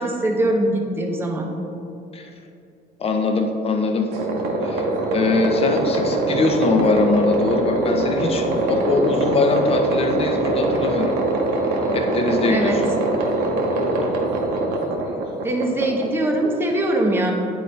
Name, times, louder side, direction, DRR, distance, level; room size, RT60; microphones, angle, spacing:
voice 1, 0.0-1.5 12.5-12.8 15.4-17.3, right 1 dB, 15° right, 0 dB, 0.8 m, -22 dB
voice 2, 3.0-4.1 4.6-4.9 5.1-11.1 11.9-12.8, left 3 dB, 35° left, 4 dB, 0.8 m, -21 dB
sound 1, 4.1-16.7, right 2 dB, 80° right, 1.0 m, -23 dB
9.2 x 4.1 x 3.3 m, 2.6 s
cardioid pair, 110°, 17 cm